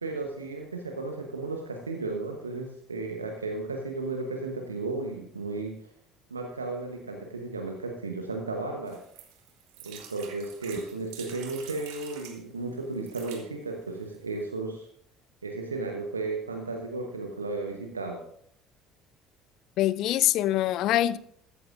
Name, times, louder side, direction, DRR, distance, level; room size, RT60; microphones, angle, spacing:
voice 1, 0.0-5.9 6.3-9.0 9.8-14.9 15.4-18.2, right 3 dB, 85° right, 1.0 m, -34 dB
sound 1, 8.9-12.4 12.9-13.4 14.1-14.2 14.4-14.5, right 8 dB, 65° right, 1.9 m, -46 dB
voice 2, 19.8-21.2, left 13 dB, 55° left, 0.5 m, -24 dB
15.0 x 14.0 x 2.6 m
figure-of-eight pair, 55°, 0 cm